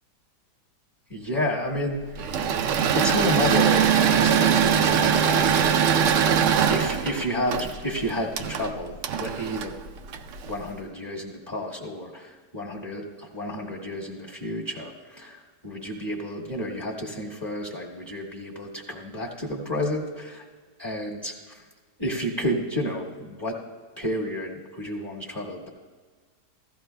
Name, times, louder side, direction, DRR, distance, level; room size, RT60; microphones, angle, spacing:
voice 1, 1.1-2.4 2.9-5.8 6.7-9.8 10.5-20.4 20.8-21.6 22.0-23.6 24.0-25.7, equal, 15° left, -4 dB, 1.0 m, -31 dB
Engine / Mechanisms, 2.2-10.6, right 8 dB, 70° right, 0.8 m, -22 dB
15.5 x 14.0 x 2.2 m, 1.5 s
omnidirectional pair, 1.8 m